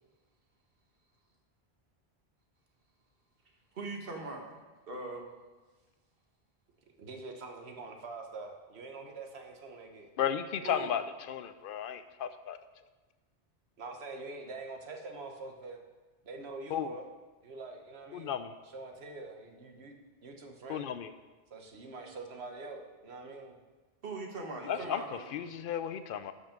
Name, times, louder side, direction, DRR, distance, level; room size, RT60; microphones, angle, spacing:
voice 1, 3.7-4.6 4.9-5.2 10.6-10.9 24.0-25.3, right 2 dB, 60° right, 1 dB, 1.6 m, -40 dB
voice 2, 7.0-10.1 13.8-15.8 16.2-17.0 17.4-18.4 18.7-19.9 20.2-21.0 21.5-23.6 24.7-24.9, right 3 dB, 75° right, 4 dB, 1.4 m, -45 dB
voice 3, 10.2-12.6 16.7-17.0 18.1-18.5 20.7-21.1 24.7-26.3, left 8 dB, 60° left, 11 dB, 0.7 m, -34 dB
12.0 x 5.6 x 5.1 m, 1.3 s
omnidirectional pair, 1.1 m